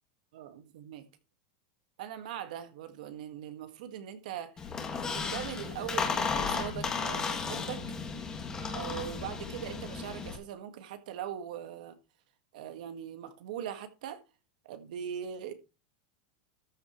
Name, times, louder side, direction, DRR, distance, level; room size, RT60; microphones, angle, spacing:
voice 1, 0.3-1.1 2.0-4.7 5.1-7.8 8.7-12.0 12.5-14.2 14.6-15.5, right 9 dB, 70° right, 1.7 m, -41 dB
Squeak, 4.6-10.4, left 5 dB, 15° left, 1.8 m, -34 dB
13.5 x 8.0 x 3.1 m
supercardioid pair, 170°, 4 cm